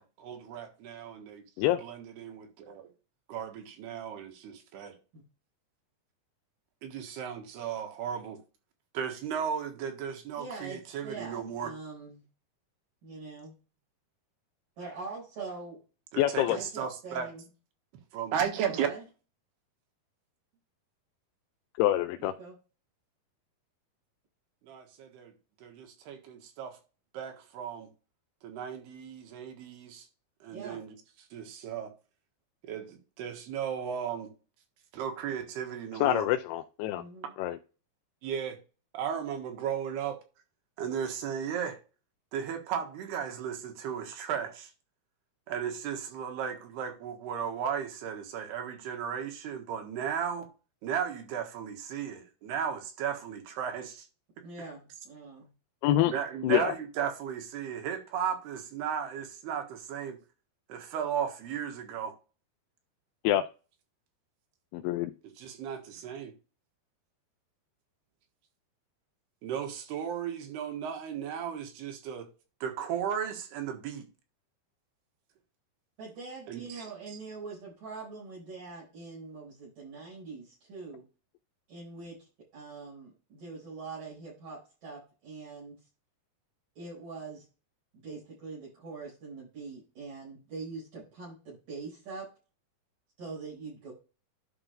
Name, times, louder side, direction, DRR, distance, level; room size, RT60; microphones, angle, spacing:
voice 1, 0.0-1.4 1.8-2.9 3.3-5.0 6.8-8.4 8.9-11.7 16.1-17.3 18.1-18.9 24.6-25.3 25.6-26.8 27.1-27.9 28.4-30.1 30.4-31.0 31.3-31.9 32.6-34.3 34.9-36.3 38.2-38.6 38.9-40.2 40.8-41.8 42.3-44.7 45.5-50.5 50.8-54.1 56.1-60.2 60.7-62.2 65.4-66.3 69.4-72.3 72.6-74.1 76.5-77.2, right 8 dB, 90° right, 3.6 m, -35 dB
voice 2, 10.4-12.2 13.0-13.6 14.8-15.8 16.4-17.4 18.7-19.0 22.2-22.5 30.5-30.8 36.9-37.3 54.4-55.5 76.0-81.0 81.7-82.2 82.5-85.8 86.8-87.4 88.0-92.3 93.2-93.9, right 4 dB, 55° right, 6.0 m, -43 dB
voice 3, 16.2-16.6 21.8-22.3 36.0-37.0 37.4-37.6 55.8-56.1 56.4-56.7 63.2-63.4 64.7-65.1, left 13 dB, 85° left, 2.6 m, -26 dB
11.0 x 5.2 x 3.3 m
omnidirectional pair, 4.5 m